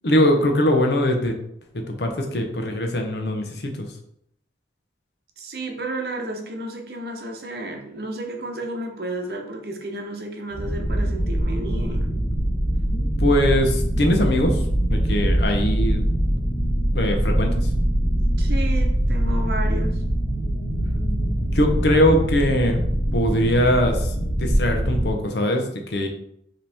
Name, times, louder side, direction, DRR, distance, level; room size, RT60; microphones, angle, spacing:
voice 1, 0.0-1.3 1.7-3.9 13.2-14.6 14.9-16.0 16.9-17.7 21.5-22.8 23.1-26.1, left 1 dB, 65° left, 3 dB, 0.8 m, -21 dB
voice 2, 5.4-12.1 18.4-20.0, right 1 dB, 55° right, 2 dB, 0.8 m, -32 dB
sound 1, 10.5-25.1, right 1 dB, 50° left, 1.1 m, -23 dB
5.2 x 3.0 x 3.5 m, 0.75 s
head